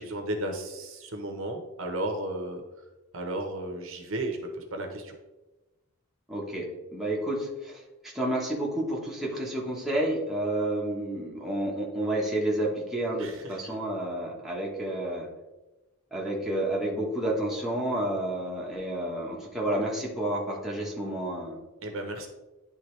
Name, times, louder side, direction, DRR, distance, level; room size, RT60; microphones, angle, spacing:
voice 1, 0.0-2.6 3.1-5.2 13.2-13.7 21.8-22.3, right 1 dB, 60° right, 3 dB, 0.9 m, -34 dB
voice 2, 6.3-6.7 6.9-7.8 8.1-15.3 16.1-21.6, right 1 dB, ahead, -5 dB, 1.1 m, -30 dB
10.5 x 3.5 x 3.2 m, 1.1 s
head